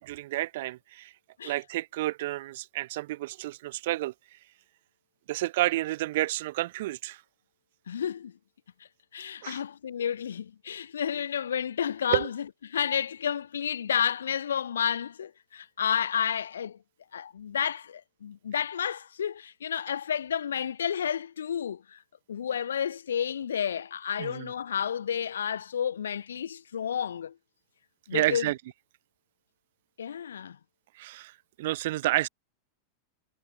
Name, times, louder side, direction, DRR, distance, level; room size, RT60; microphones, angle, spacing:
voice 1, 0.0-1.1 1.4-4.1 5.3-7.2 9.4-9.6 12.1-12.3 24.2-24.5 28.1-28.6 30.9-32.3, right 17 dB, 55° right, 5.6 m, -30 dB
voice 2, 7.9-8.3 9.1-16.8 17.1-22.0 22.3-27.3 28.1-28.5 30.0-30.6, left 8 dB, 65° left, 3.5 m, -31 dB
figure-of-eight pair, 90°, 0 cm